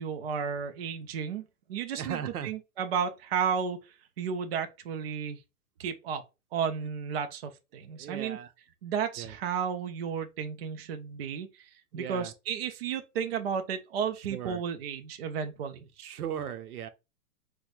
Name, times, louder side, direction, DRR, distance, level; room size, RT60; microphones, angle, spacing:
voice 1, 0.0-2.2 2.4-3.8 4.2-5.4 5.8-6.2 6.5-8.4 8.8-11.7 11.9-15.8, right 7 dB, 45° right, 0.4 m, -33 dB
voice 2, 2.0-2.5 7.9-8.5 9.2-9.4 11.9-12.3 14.2-14.6 16.0-16.9, right 9 dB, 90° right, 0.7 m, -37 dB
4.5 x 2.1 x 2.3 m
hypercardioid pair, 150°, 44 cm